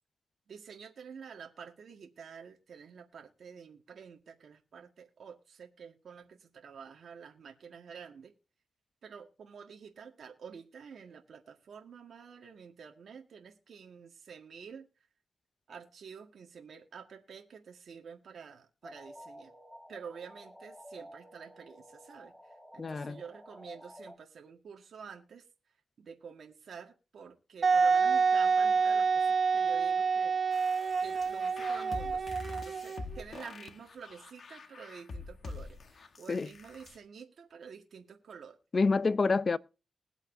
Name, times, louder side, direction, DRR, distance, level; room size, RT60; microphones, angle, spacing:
voice 1, 0.5-8.3 9.0-14.9 15.7-19.5 19.9-25.5 26.0-30.4 31.0-38.6, right 6 dB, 70° right, 1.7 m, -49 dB
sound 1, 18.8-24.2, equal, ahead, 2.2 m, -52 dB
voice 2, 22.8-23.2 36.3-36.5 38.7-39.6, left 4 dB, 40° left, 0.5 m, -27 dB
Wind instrument woodwind instrument, 27.6-33.2, right 5 dB, 50° right, 0.9 m, -27 dB
sound 2, 30.5-37.0, left 3 dB, 55° left, 1.4 m, -46 dB
21.0 x 8.1 x 2.7 m
cardioid pair, 95°, 0 cm